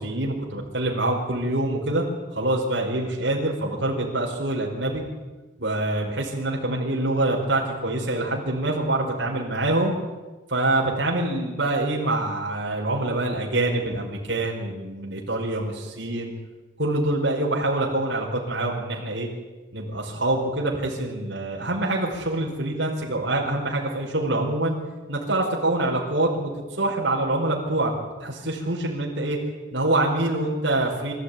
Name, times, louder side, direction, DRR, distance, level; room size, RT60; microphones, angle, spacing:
voice 1, 0.0-2.0 2.3-5.0 5.6-9.9 10.5-16.3 16.8-19.3 19.7-24.7 25.1-26.5 26.8-27.9 28.2-29.4 29.7-31.1, right 2 dB, 65° right, -2 dB, 4.9 m, -25 dB
24.5 x 14.5 x 9.7 m, 1.2 s
head